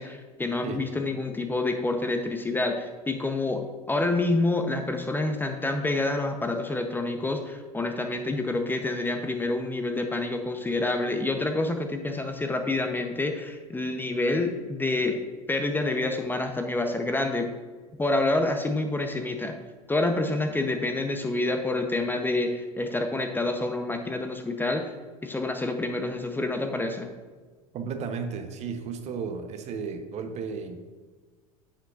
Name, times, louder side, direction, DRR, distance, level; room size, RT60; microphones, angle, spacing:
voice 1, 0.0-15.2 15.5-17.5 18.0-19.5 19.9-24.9 25.2-27.1, left 2 dB, 10° left, 5 dB, 0.7 m, -28 dB
voice 2, 27.7-30.8, right 5 dB, 40° right, 7 dB, 0.9 m, -34 dB
10.0 x 7.9 x 2.4 m, 1.4 s
figure-of-eight pair, 80°, 18 cm